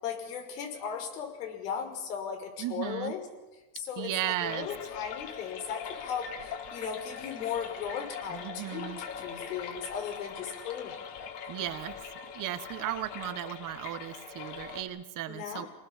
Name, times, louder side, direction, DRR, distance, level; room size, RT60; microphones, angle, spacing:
voice 1, 0.0-3.2 3.7-11.3 15.3-15.7, left 7 dB, 90° left, 4 dB, 6.1 m, -37 dB
voice 2, 2.6-3.1 4.0-4.7 8.3-9.0 11.5-12.0 12.3-15.7, right 13 dB, 45° right, 10 dB, 1.6 m, -35 dB
sound 1, 4.4-14.8, left 7 dB, 60° left, 4.1 m, -42 dB
26.0 x 19.5 x 7.5 m, 1.1 s
supercardioid pair, 135°, 46 cm